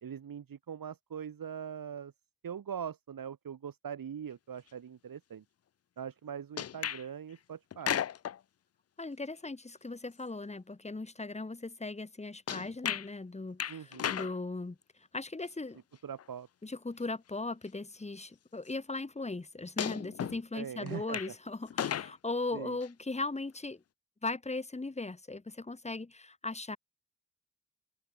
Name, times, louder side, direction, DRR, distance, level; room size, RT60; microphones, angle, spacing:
voice 1, 0.0-2.1 2.4-5.4 6.0-8.0 13.7-14.1 16.0-16.5 20.5-21.3 22.5-22.8, right 8 dB, 85° right, 2.6 m, -42 dB
sound 1, 6.6-7.0 7.7-8.4 12.5-13.1 13.6-14.3 16.2-16.3 17.5-17.6 19.8-20.4 20.9-21.3 21.7-22.1 22.8-22.9, left 9 dB, 50° left, 0.4 m, -34 dB
voice 2, 9.0-14.8 15.1-15.8 16.6-23.8 24.2-26.8, left 3 dB, 20° left, 1.2 m, -38 dB
open air
cardioid pair, 55°, 33 cm